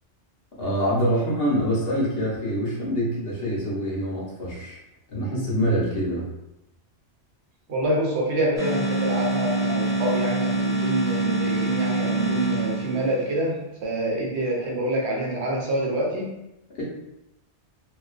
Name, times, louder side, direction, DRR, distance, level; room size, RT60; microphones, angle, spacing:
voice 1, 0.6-4.8 5.1-6.2 16.7-16.8, equal, 60° left, -5 dB, 1.0 m, -25 dB
voice 2, 7.7-16.4, right 1 dB, 75° right, -2 dB, 0.9 m, -26 dB
sound 1, 8.6-13.3, right 2 dB, 35° right, 0.9 m, -25 dB
2.4 x 2.3 x 2.4 m, 0.89 s
omnidirectional pair, 1.2 m